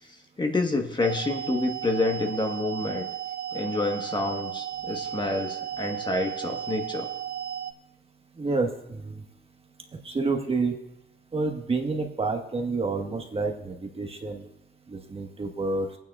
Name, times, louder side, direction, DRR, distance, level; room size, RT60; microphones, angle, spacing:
voice 1, 0.4-3.1 3.5-7.1, left 2 dB, 20° left, 3 dB, 1.2 m, -28 dB
sound 1, 1.0-7.7, right 10 dB, 55° right, 0.4 m, -34 dB
voice 2, 8.4-9.2 10.0-10.8 11.3-14.5 14.9-15.9, right 3 dB, 30° right, 3 dB, 1.3 m, -29 dB
23.0 x 9.2 x 2.4 m, 0.85 s
cardioid pair, 90°, 20 cm